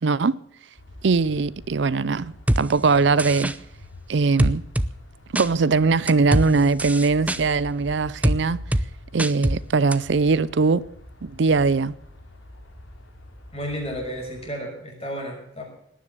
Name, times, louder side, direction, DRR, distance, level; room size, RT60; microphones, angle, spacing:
voice 1, 0.0-0.4 1.0-3.5 4.1-4.6 5.3-8.6 9.1-10.8 11.2-11.9, right 4 dB, 60° right, 0.5 m, -21 dB
sound 1, 0.8-14.5, left 1 dB, 80° left, 3.9 m, -45 dB
sound 2, 2.5-2.6 3.2-3.6 4.4-4.9 5.4-5.5 6.1-6.5 6.8-7.4 8.2-8.4 8.7-8.9 9.2-9.6 9.9-10.0, right 1 dB, 5° right, 0.6 m, -22 dB
voice 2, 13.5-15.6, equal, 30° left, 6.1 m, -32 dB
18.5 x 10.0 x 6.8 m
head